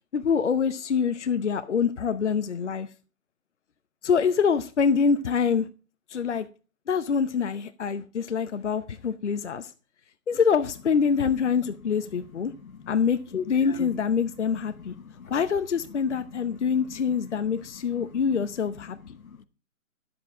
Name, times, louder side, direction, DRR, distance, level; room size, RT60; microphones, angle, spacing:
voice 1, 0.1-2.9 4.0-5.7 6.1-6.5 6.9-9.7 10.3-12.5 12.9-13.2 13.5-14.9 15.3-19.2, left 6 dB, 55° left, 0.8 m, -25 dB
voice 2, 13.3-14.0 15.0-15.3 16.2-16.8 17.1-17.4 17.9-18.5 19.2-19.4, left 7 dB, 75° left, 1.1 m, -39 dB
11.0 x 7.8 x 3.7 m
hypercardioid pair, 160°, 41 cm